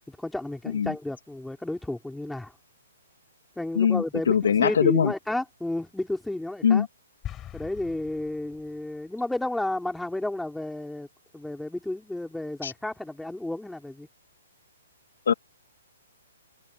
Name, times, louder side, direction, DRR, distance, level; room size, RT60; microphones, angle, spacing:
voice 1, 0.1-2.5 3.5-6.9 7.5-11.1 11.3-14.1, left 1 dB, 5° left, 3.4 m, -32 dB
voice 2, 3.7-5.1 6.6-6.9 12.6-12.7 15.3-15.4, left 7 dB, 70° left, 1.3 m, -22 dB
sound 1, 7.2-8.9, left 12 dB, 20° left, 4.1 m, -42 dB
hypercardioid pair, 130°, 0 cm